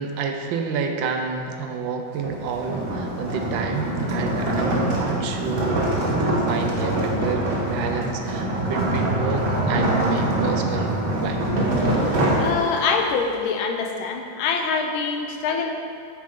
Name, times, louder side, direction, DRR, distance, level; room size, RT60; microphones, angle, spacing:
voice 1, 0.0-10.9 11.2-11.4, right 5 dB, 75° right, 4 dB, 1.4 m, -29 dB
sound 1, 2.1-13.1, right 1 dB, 35° right, 1.1 m, -24 dB
voice 2, 12.4-15.7, left 5 dB, 90° left, 4 dB, 1.6 m, -24 dB
8.6 x 6.8 x 3.7 m, 2.3 s
omnidirectional pair, 2.2 m